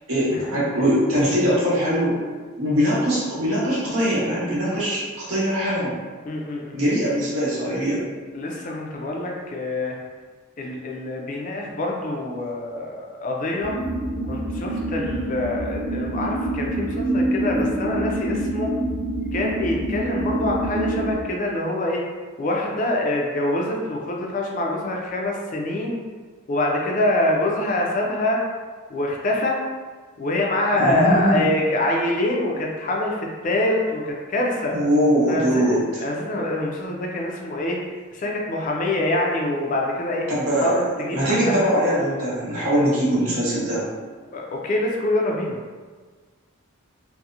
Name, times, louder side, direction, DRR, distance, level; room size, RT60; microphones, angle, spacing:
voice 1, 0.1-2.2 2.6-5.9 6.7-8.0 30.7-31.5 34.7-36.0 40.3-40.8 41.1-43.8, equal, 80° right, -8 dB, 0.9 m, -22 dB
voice 2, 6.2-6.7 8.3-10.0 10.6-13.8 14.3-18.7 19.3-22.0 22.4-26.0 26.5-28.4 28.9-29.6 30.2-34.7 35.3-37.8 38.1-40.3 40.6-41.7 44.3-45.6, left 1 dB, 40° left, -1 dB, 0.3 m, -25 dB
sound 1, 13.6-21.1, right 1 dB, 55° right, 0.4 m, -26 dB
2.7 x 2.0 x 2.4 m, 1.5 s
head